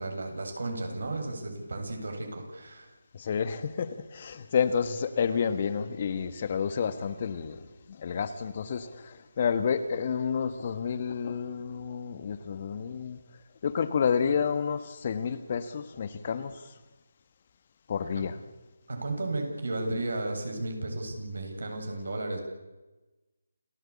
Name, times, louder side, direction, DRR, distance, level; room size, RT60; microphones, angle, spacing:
voice 1, 0.0-2.9 18.2-18.3 18.9-22.4, right 2 dB, 70° right, 3 dB, 7.3 m, -34 dB
voice 2, 3.1-13.2 13.6-16.7 17.9-18.4, left 6 dB, 40° left, 12 dB, 1.5 m, -30 dB
28.5 x 15.5 x 8.6 m, 1.1 s
figure-of-eight pair, 160°, 0 cm